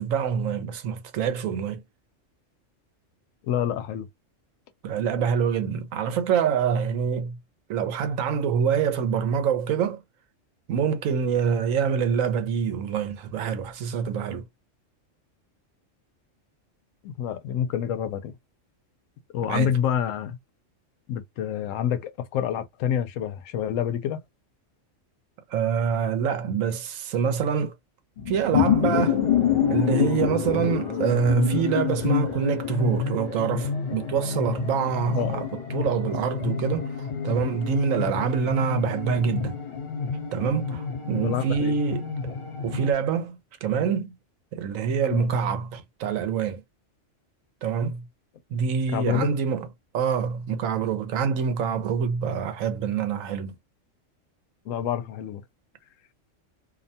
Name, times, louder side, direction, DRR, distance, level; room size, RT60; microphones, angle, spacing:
voice 1, 0.0-1.8 4.8-7.4 7.7-10.0 10.7-14.5 19.5-19.8 25.5-27.7 28.3-29.2 29.7-39.6 40.3-42.4 42.6-44.1 44.5-46.6 47.6-48.0 48.5-49.7 49.9-53.5, right 7 dB, 85° right, 1.1 m, -26 dB
voice 2, 3.5-4.1 17.0-18.3 19.3-20.4 21.1-24.2 35.2-35.5 41.1-41.8 45.1-45.3 48.9-49.3 54.7-55.4, left 9 dB, 80° left, 0.9 m, -27 dB
sound 1, 28.2-42.9, left 8 dB, 50° left, 1.0 m, -27 dB
2.6 x 2.1 x 2.6 m
omnidirectional pair, 1.3 m